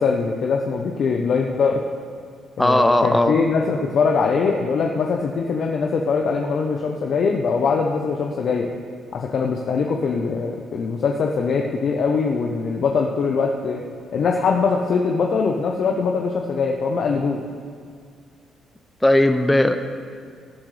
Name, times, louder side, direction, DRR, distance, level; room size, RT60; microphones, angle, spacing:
voice 1, 0.0-1.8 2.6-8.7 9.1-13.8 14.1-17.4, left 5 dB, 60° left, 1 dB, 0.8 m, -22 dB
voice 2, 2.6-3.4 19.0-19.8, left 1 dB, 10° left, 8 dB, 0.6 m, -17 dB
18.0 x 10.0 x 3.3 m, 2.1 s
cardioid pair, 90°, 0 cm